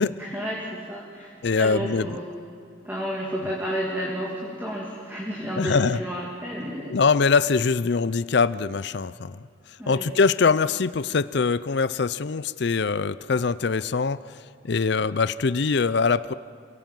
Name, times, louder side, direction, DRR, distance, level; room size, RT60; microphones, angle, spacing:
voice 1, 0.2-2.3 2.8-7.0 9.8-10.1, equal, 10° right, -3 dB, 2.6 m, -31 dB
voice 2, 1.4-2.2 5.6-6.0 6.9-9.4 9.9-14.4 14.6-16.3, left 4 dB, 55° left, 16 dB, 0.5 m, -23 dB
28.0 x 17.5 x 7.6 m, 2.4 s
head